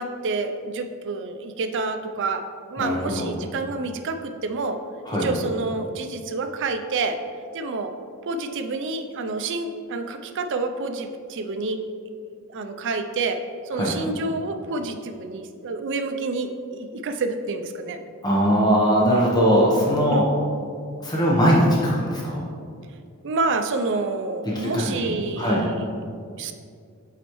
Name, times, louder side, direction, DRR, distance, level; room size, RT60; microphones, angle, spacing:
voice 1, 0.0-2.4 2.7-4.8 5.2-7.2 7.5-7.9 8.2-11.8 12.5-13.4 13.7-18.0 20.1-20.3 23.2-25.9 26.4-26.5, right 3 dB, 55° right, 7 dB, 0.4 m, -28 dB
voice 2, 2.8-3.3 5.0-5.3 13.7-13.9 18.2-20.2 21.0-22.4 24.4-25.1 25.4-25.6, equal, 20° left, -5 dB, 0.9 m, -20 dB
7.8 x 4.0 x 3.1 m, 2.3 s
head